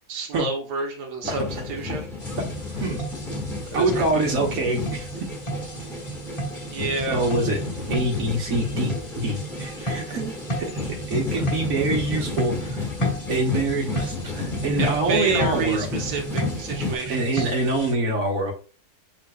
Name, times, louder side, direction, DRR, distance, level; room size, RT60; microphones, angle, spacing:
voice 1, 0.1-2.1 3.7-4.3 6.7-7.3 14.8-17.5, right 3 dB, 90° right, 2 dB, 1.5 m, -29 dB
sound 1, 1.2-17.0, left 4 dB, ahead, 1.4 m, -32 dB
sound 2, 2.2-17.9, right 2 dB, 25° left, 0.8 m, -33 dB
voice 2, 3.7-5.3 7.1-7.6 7.9-10.7 11.1-12.8 13.3-15.9 17.1-18.5, right 2 dB, 60° right, 0 dB, 1.5 m, -25 dB
6.4 x 3.3 x 2.3 m, 0.36 s
omnidirectional pair, 1.7 m